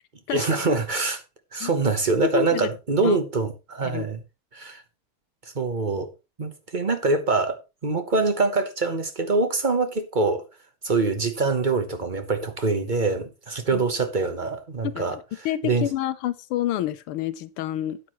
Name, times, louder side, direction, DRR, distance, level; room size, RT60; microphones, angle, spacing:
voice 1, 0.3-1.2 1.5-4.2 4.5-4.8 5.4-6.1 6.4-10.4 10.8-15.2 15.6-15.9, right 3 dB, 40° right, 0.7 m, -24 dB
voice 2, 2.3-2.7 3.0-3.2 3.8-4.1 13.7-13.8 14.8-18.0, left 12 dB, 80° left, 1.6 m, -29 dB
12.5 x 9.6 x 3.1 m
omnidirectional pair, 2.4 m